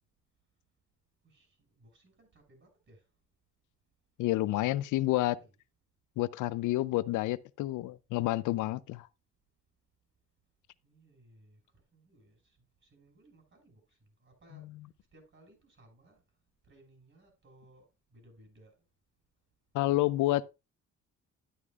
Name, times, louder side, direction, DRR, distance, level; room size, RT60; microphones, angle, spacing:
voice 1, 1.2-3.0 4.6-5.5 10.8-11.6 11.9-14.7 15.1-16.2 16.7-18.7, right 1 dB, 40° right, 6.7 m, -61 dB
voice 2, 4.2-5.4 6.2-9.1 19.7-20.5, left 16 dB, 85° left, 0.5 m, -29 dB
11.0 x 9.7 x 2.4 m
cardioid pair, 90°, 30 cm